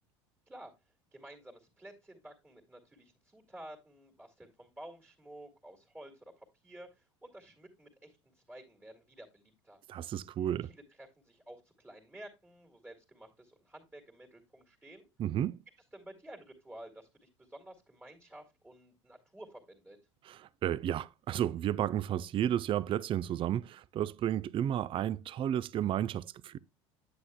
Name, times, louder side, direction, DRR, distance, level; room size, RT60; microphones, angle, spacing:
voice 1, 0.5-9.8 10.6-15.1 15.9-20.0, right 1 dB, 10° right, 2.2 m, -52 dB
voice 2, 9.9-10.7 15.2-15.6 20.2-26.6, right 11 dB, 35° right, 0.4 m, -32 dB
9.6 x 8.4 x 2.2 m
hypercardioid pair, 75°, 16 cm